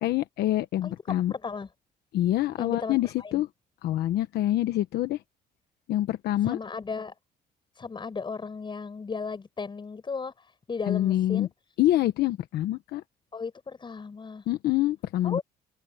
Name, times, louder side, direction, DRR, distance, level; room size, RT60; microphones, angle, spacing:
voice 1, 0.0-1.3 2.1-3.5 3.8-5.2 5.9-6.6 10.9-11.5 11.8-13.0 14.5-15.4, left 14 dB, 75° left, 1.2 m, -26 dB
voice 2, 1.3-1.7 2.6-3.4 6.4-7.1 7.8-11.5 13.3-14.5 15.2-15.4, left 5 dB, 30° left, 7.1 m, -35 dB
cardioid pair, 110°, 17 cm